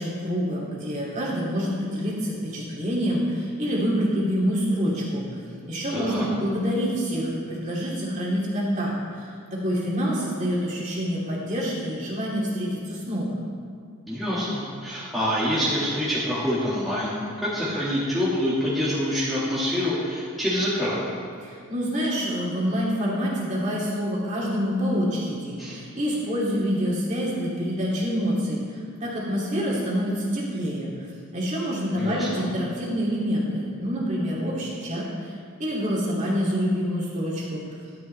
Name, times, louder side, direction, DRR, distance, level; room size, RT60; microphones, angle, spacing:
voice 1, 0.0-5.2 5.7-13.4 21.4-37.6, equal, 35° right, -5 dB, 2.4 m, -27 dB
voice 2, 5.9-6.3 14.1-21.0 25.6-25.8 31.9-32.4, equal, ahead, -10 dB, 1.8 m, -26 dB
11.5 x 11.0 x 3.3 m, 2.1 s
head